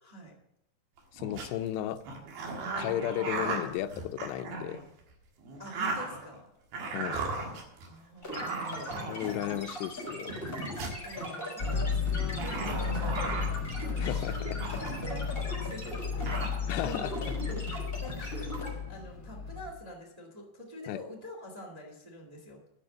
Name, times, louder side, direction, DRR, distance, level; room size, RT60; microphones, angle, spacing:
voice 1, 0.0-0.3 2.7-2.8 5.6-6.5 7.9-9.8 10.8-14.5 14.8-16.4 16.7-17.1 17.5-22.6, left 1 dB, 80° right, 0 dB, 0.3 m, -46 dB
sound 1, 1.0-1.5 2.1-4.8 5.4-6.4 6.7-7.9 8.3-9.6 10.3-11.0 12.3-13.6 14.1-15.3 15.7-15.8 16.0-16.5, right 3 dB, 65° right, 3.4 m, -36 dB
voice 2, 1.1-2.0 2.8-4.8 6.9-7.2 9.1-10.4 14.0-14.8 16.7-17.1 20.9-21.0, left 12 dB, 85° left, 10 dB, 2.8 m, -34 dB
sound 2, 8.2-18.7, equal, 15° left, 4.0 m, -39 dB
sound 3, 11.6-19.7, left 6 dB, 65° left, 0.9 m, -34 dB
12.0 x 6.0 x 7.6 m, 0.81 s
omnidirectional pair, 4.9 m